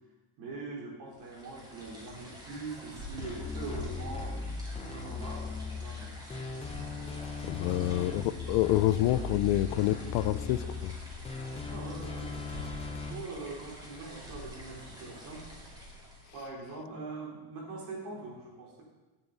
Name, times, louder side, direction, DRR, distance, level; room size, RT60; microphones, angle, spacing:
voice 1, 0.4-4.4 4.7-6.2 7.6-8.1 8.5-8.6 11.7-15.5 16.3-18.8, right 3 dB, 70° right, -3 dB, 4.1 m, -43 dB
sound 1, 1.1-16.5, equal, 10° right, 2.5 m, -47 dB
sound 2, 3.2-13.1, left 4 dB, 15° left, 0.7 m, -38 dB
voice 2, 7.4-10.9, left 14 dB, 70° left, 15 dB, 0.6 m, -28 dB
12.5 x 9.2 x 4.0 m, 1.2 s
cardioid pair, 165°, 42 cm